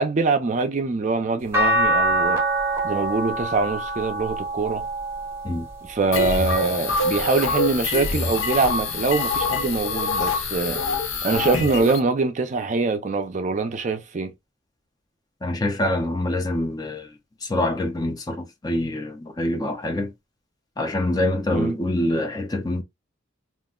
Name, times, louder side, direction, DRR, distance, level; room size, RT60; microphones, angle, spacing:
voice 1, 0.0-2.4 2.8-4.9 5.8-10.8 11.2-14.3 21.5-21.8, right 4 dB, 40° right, 0.4 m, -24 dB
sound 1, 1.5-7.8 8.4-9.8 11.2-11.3, right 1 dB, 15° right, 0.8 m, -27 dB
sound 2, 6.1-12.0, left 3 dB, 85° left, 0.6 m, -25 dB
voice 2, 15.4-17.1 17.4-20.1 20.8-22.8, left 1 dB, 20° left, 0.4 m, -25 dB
2.5 x 2.0 x 3.5 m
head